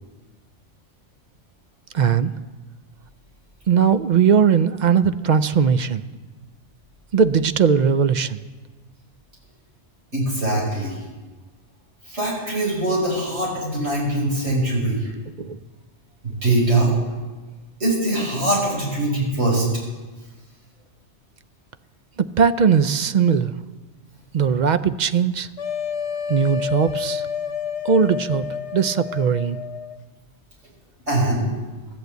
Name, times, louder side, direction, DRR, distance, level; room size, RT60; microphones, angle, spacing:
voice 1, 1.9-2.3 3.7-6.0 7.1-8.4 15.4-15.6 22.2-23.6 24.3-25.5 26.3-27.2 27.8-28.4 28.7-29.6, right 6 dB, 55° right, 12 dB, 0.5 m, -19 dB
voice 2, 10.1-11.0 12.1-15.1 16.4-16.9 17.8-19.7 31.1-31.4, right 2 dB, 70° right, -4 dB, 5.7 m, -22 dB
sound 1, 25.6-30.0, left 7 dB, 70° left, 1.0 m, -29 dB
15.0 x 11.0 x 8.0 m, 1.3 s
omnidirectional pair, 1.2 m